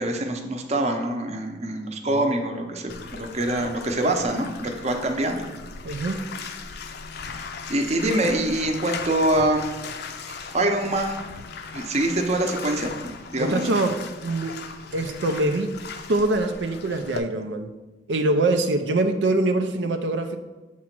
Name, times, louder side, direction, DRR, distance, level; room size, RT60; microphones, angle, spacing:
voice 1, 0.0-5.5 7.7-9.7 10.5-11.2 11.7-13.6, right 1 dB, 40° right, 4 dB, 0.7 m, -25 dB
Bathtub (filling or washing), 2.9-17.2, left 5 dB, 65° left, 0.5 m, -38 dB
voice 2, 5.8-6.2 13.4-14.6 14.9-15.8 16.1-17.7 18.1-20.4, right 2 dB, 90° right, 6 dB, 0.5 m, -24 dB
7.2 x 2.9 x 5.9 m, 1.1 s
head